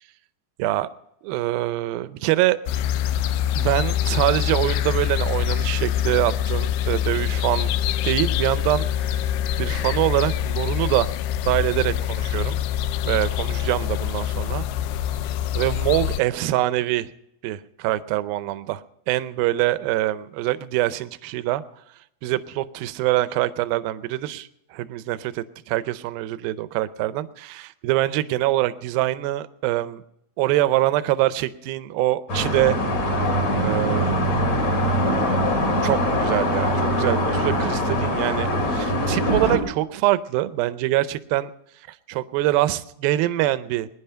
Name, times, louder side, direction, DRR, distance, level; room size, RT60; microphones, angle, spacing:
voice 1, 1.2-2.6 3.5-7.7 8.0-9.2 9.6-11.1 11.5-12.6 13.0-14.7 15.5-17.1 17.4-18.8 19.1-21.6 22.2-30.0 30.4-32.8 33.6-34.7 35.8-41.5 42.1-43.9, right 15 dB, 80° right, 14 dB, 2.5 m, -24 dB
sound 1, 2.7-16.2, left 11 dB, 90° left, 2.7 m, -25 dB
sound 2, 32.3-39.6, equal, 45° left, 3.7 m, -22 dB
21.0 x 10.5 x 5.6 m, 0.80 s
omnidirectional pair, 4.4 m